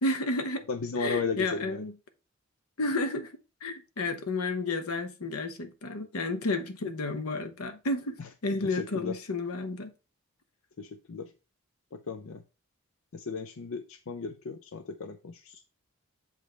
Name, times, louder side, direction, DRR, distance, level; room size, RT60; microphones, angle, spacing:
voice 1, 0.0-0.6 1.0-1.9 2.8-3.3 3.6-9.9, left 2 dB, 85° left, 0.9 m, -31 dB
voice 2, 0.7-1.9 8.2-8.3 8.6-9.1 10.8-11.3 11.9-12.4 13.1-15.6, left 4 dB, 70° left, 0.5 m, -35 dB
7.5 x 5.1 x 3.3 m
head